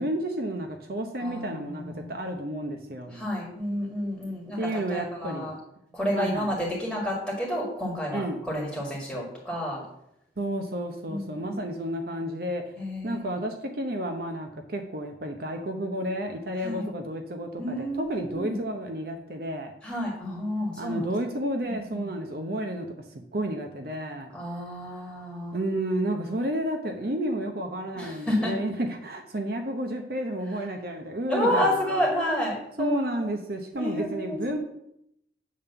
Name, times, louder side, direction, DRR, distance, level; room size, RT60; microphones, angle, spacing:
voice 1, 0.0-3.2 4.6-5.5 6.1-6.5 8.1-8.4 10.4-12.6 13.0-19.7 20.8-24.3 24.9-25.0 25.5-32.0 32.8-34.6, right 1 dB, 55° right, 4 dB, 0.8 m, -31 dB
voice 2, 1.2-2.1 3.1-5.6 5.9-9.8 11.1-11.6 12.8-13.3 16.6-16.9 17.6-18.6 19.8-21.0 21.6-22.1 24.3-25.6 28.0-28.6 31.3-33.3 33.7-34.6, equal, ahead, -4 dB, 1.9 m, -30 dB
8.6 x 3.6 x 6.7 m, 0.78 s
head